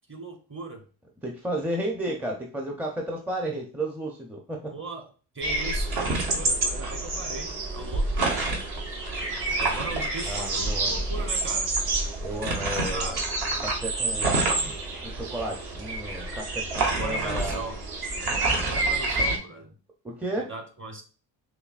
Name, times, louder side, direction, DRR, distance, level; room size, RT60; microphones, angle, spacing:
voice 1, 0.1-0.8 4.7-5.1 5.3-8.1 9.6-11.7 12.9-13.2 13.5-13.6 14.2-14.7 16.8-17.8 18.5-19.7 20.4-21.0, right 3 dB, 30° right, 5 dB, 0.9 m, -38 dB
voice 2, 1.2-4.7 10.2-11.3 12.2-13.2 13.6-14.7 15.0-17.7 20.0-20.5, right 1 dB, 5° right, 0 dB, 0.5 m, -33 dB
sound 1, 5.4-19.4, right 2 dB, 60° right, 1.1 m, -28 dB
5.7 x 2.1 x 2.4 m, 0.37 s
cardioid pair, 95°, 43 cm